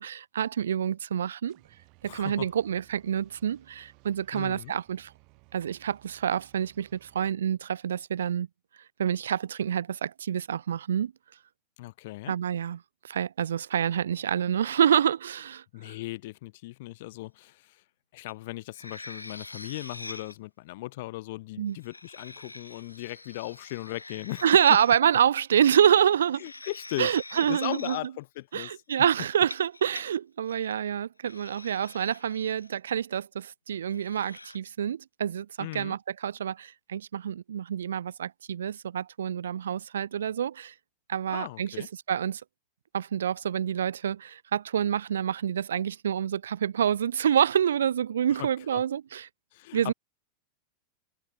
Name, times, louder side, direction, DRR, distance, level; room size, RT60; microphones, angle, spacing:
voice 1, 0.0-1.6 2.0-5.1 5.5-8.5 9.0-11.1 12.3-12.8 13.0-15.9 21.6-21.8 24.4-26.4 27.0-28.0 28.5-40.7 41.1-41.7 42.1-42.4 42.9-49.3 49.7-49.9, right 9 dB, 65° right, 0.3 m, -27 dB
sound 1, 1.5-7.3, right 32 dB, 45° right, 7.2 m, -60 dB
voice 2, 2.0-2.5 4.3-4.7 11.8-12.3 15.7-17.8 18.1-24.5 26.4-28.7 35.6-36.0 41.3-41.9 48.3-48.8 49.5-49.9, left 19 dB, 50° left, 0.8 m, -38 dB
sound 2, 18.3-18.4 18.7-20.4 21.7-25.0 26.1-28.0 29.3-30.1 30.5-30.7 31.2-32.8 33.8-34.6, left 2 dB, 85° left, 1.7 m, -45 dB
figure-of-eight pair, 90°, 0 cm